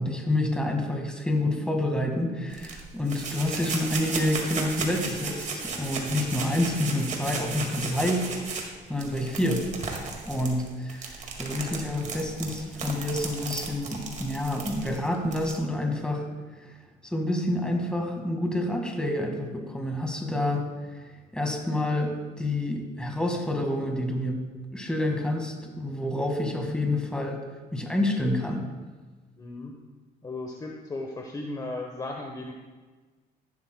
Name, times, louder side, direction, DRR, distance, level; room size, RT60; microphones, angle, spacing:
voice 1, 0.0-8.3 8.9-9.7 10.3-16.3 16.6-16.8 17.0-20.7 20.9-21.0 21.3-24.5 24.7-27.4 27.7-28.7, left 1 dB, 5° left, 2 dB, 1.7 m, -28 dB
sound 1, 2.5-15.6, right 4 dB, 45° right, 1.9 m, -35 dB
voice 2, 29.4-29.8 30.2-32.5, left 2 dB, 20° left, 1 dB, 1.0 m, -36 dB
14.0 x 11.5 x 2.2 m, 1.3 s
cardioid pair, 110°, 17 cm